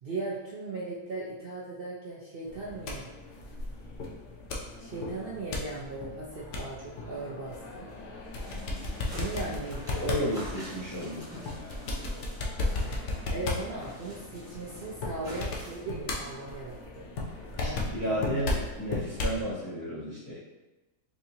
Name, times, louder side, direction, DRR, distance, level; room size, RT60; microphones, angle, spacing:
voice 1, 0.0-3.1 4.8-7.9 9.1-9.8 10.1-10.3 13.3-17.1 17.6-18.2, right 3 dB, 70° right, -6 dB, 0.5 m, -38 dB
sound 1, 2.5-19.4, left 2 dB, 60° left, 0.8 m, -36 dB
sound 2, 8.4-13.3 13.6-15.9, equal, 5° right, 1.0 m, -46 dB
voice 2, 9.9-11.3 17.6-20.4, equal, 25° left, -10 dB, 0.4 m, -33 dB
4.4 x 2.8 x 2.7 m, 1.1 s
omnidirectional pair, 1.7 m